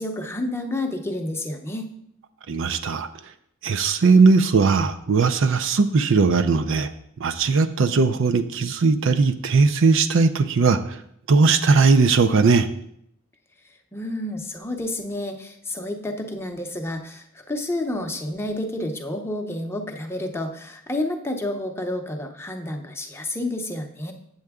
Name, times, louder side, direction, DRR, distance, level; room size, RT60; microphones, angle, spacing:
voice 1, 0.0-1.9 13.9-24.1, left 1 dB, 10° left, 4 dB, 0.7 m, -30 dB
voice 2, 2.5-3.1 3.6-6.9 7.2-10.8 11.3-12.7, right 4 dB, 65° right, 10 dB, 0.5 m, -18 dB
7.8 x 7.6 x 3.6 m, 0.72 s
head